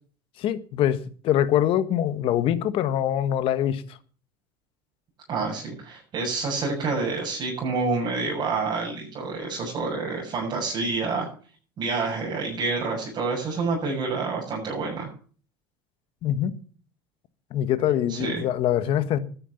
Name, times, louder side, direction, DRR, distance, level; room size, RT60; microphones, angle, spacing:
voice 1, 0.4-3.8 16.2-16.5 17.5-19.2, left 11 dB, 50° left, 1.6 m, -24 dB
voice 2, 5.3-11.3 11.8-15.1 18.1-18.4, right 4 dB, 40° right, 6.9 m, -28 dB
13.0 x 10.0 x 7.0 m
supercardioid pair, 120°, 11 cm